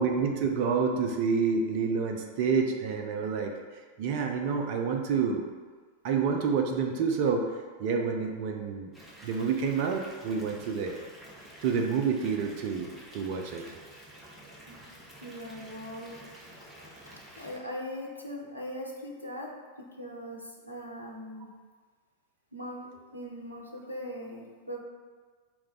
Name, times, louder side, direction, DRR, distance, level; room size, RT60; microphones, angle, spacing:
voice 1, 0.0-5.4 6.0-8.9 9.2-11.0 11.6-13.7, right 5 dB, 45° right, 3 dB, 0.4 m, -28 dB
Water tap faucet / Bathtub (filling or washing) / Fill (with liquid), 8.9-17.6, right 1 dB, 10° right, 0.8 m, -50 dB
voice 2, 15.2-16.2 16.6-19.5 19.8-21.5 22.5-24.8, equal, 90° left, -2 dB, 0.5 m, -40 dB
4.3 x 2.2 x 3.8 m, 1.5 s
figure-of-eight pair, 90°, 0 cm